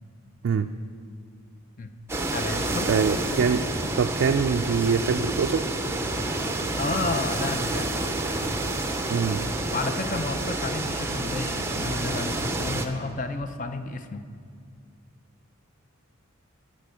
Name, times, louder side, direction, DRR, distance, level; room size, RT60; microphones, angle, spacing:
sound 1, 2.1-12.9, right 2 dB, 10° right, 0.5 m, -29 dB
voice 1, 2.3-2.9 6.8-8.2 9.7-14.2, left 3 dB, 35° left, 8 dB, 0.5 m, -31 dB
voice 2, 2.9-3.6 4.0-5.7 9.1-9.5, right 6 dB, 60° right, 5 dB, 0.3 m, -24 dB
15.0 x 5.1 x 6.8 m, 2.2 s
head